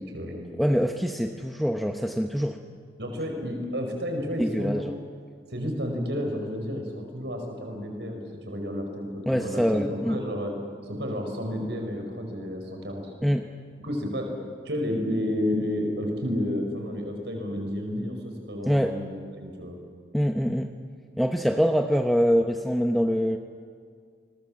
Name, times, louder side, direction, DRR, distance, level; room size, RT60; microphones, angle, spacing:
voice 1, 0.0-0.4 3.0-4.9 5.5-10.6 10.9-13.1 13.8-14.3 14.6-19.8, equal, 70° right, 3 dB, 5.1 m, -31 dB
voice 2, 0.6-2.6 4.4-4.9 9.3-10.2 13.2-13.5 18.7-19.0 20.1-20.7 21.2-23.4, equal, ahead, 4 dB, 0.9 m, -24 dB
29.0 x 22.0 x 7.4 m, 2.1 s
head